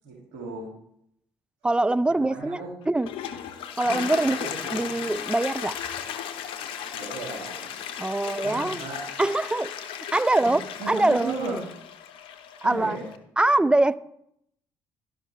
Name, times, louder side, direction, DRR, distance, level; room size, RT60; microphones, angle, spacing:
voice 1, 0.0-0.7 2.1-2.7 3.8-4.4 4.6-5.0 6.9-7.7 8.4-9.0 10.4-10.5 10.8-11.6 12.6-13.0, right 2 dB, 75° right, 2.3 m, -35 dB
voice 2, 1.6-2.6 2.9-3.1 3.8-5.8 8.0-8.8 9.2-9.7 10.1-11.3 12.6-13.0 13.4-14.0, right 2 dB, 10° right, 0.4 m, -23 dB
Toilet flush, 2.8-13.2, left 9 dB, 65° left, 0.7 m, -36 dB
12.0 x 5.6 x 3.3 m
hypercardioid pair, 50°, 10 cm